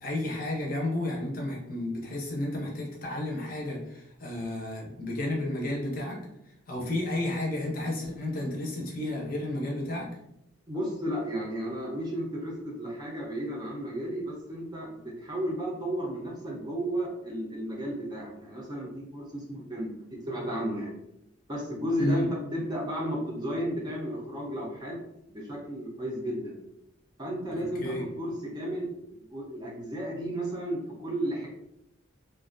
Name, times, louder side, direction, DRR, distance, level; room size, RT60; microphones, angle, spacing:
voice 1, 0.0-6.3 6.7-10.1 22.0-22.3 27.5-28.0, left 1 dB, 45° left, -1 dB, 0.6 m, -32 dB
voice 2, 10.7-20.9 21.5-25.0 25.3-26.6 27.2-31.5, equal, 20° right, -3 dB, 0.4 m, -33 dB
2.4 x 2.2 x 2.5 m, 0.82 s
head